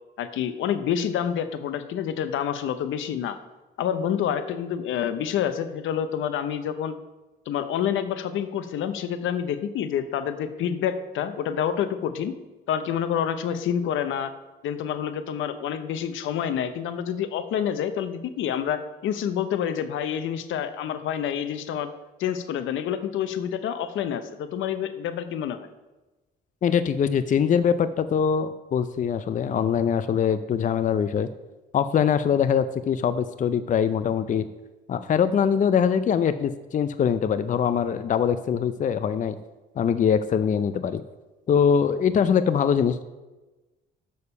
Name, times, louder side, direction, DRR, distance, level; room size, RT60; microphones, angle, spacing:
voice 1, 0.2-3.4 3.8-7.0 7.5-12.3 12.7-14.3 14.6-21.9 22.2-25.7, left 9 dB, 80° left, 11 dB, 0.7 m, -28 dB
voice 2, 26.6-31.3 31.7-34.5 34.9-39.4 39.8-41.0 41.5-43.0, left 7 dB, 40° left, 12 dB, 0.4 m, -23 dB
7.0 x 6.5 x 5.5 m, 1.1 s
cardioid pair, 90°, 20 cm